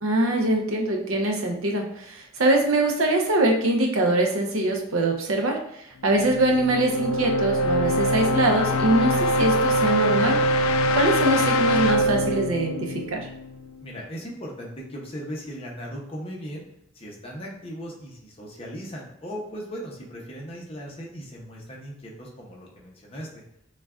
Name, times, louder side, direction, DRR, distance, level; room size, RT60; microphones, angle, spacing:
voice 1, 0.0-10.4 10.9-13.3, right 1 dB, 85° right, 1 dB, 0.7 m, -23 dB
sound 1, 6.1-13.9, equal, 85° left, 0.3 m, -23 dB
voice 2, 13.8-16.6 16.9-23.4, equal, 30° left, -2 dB, 0.8 m, -38 dB
6.2 x 2.3 x 2.4 m, 0.75 s
head